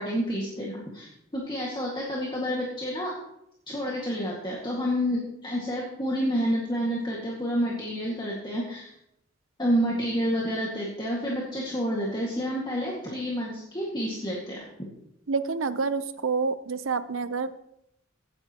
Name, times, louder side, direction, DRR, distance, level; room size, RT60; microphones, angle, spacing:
voice 1, 0.0-3.1 3.7-8.9 9.6-14.6, equal, 20° left, -4 dB, 1.9 m, -29 dB
voice 2, 15.3-17.5, right 4 dB, 70° right, 13 dB, 0.7 m, -28 dB
16.5 x 9.7 x 3.0 m, 0.80 s
head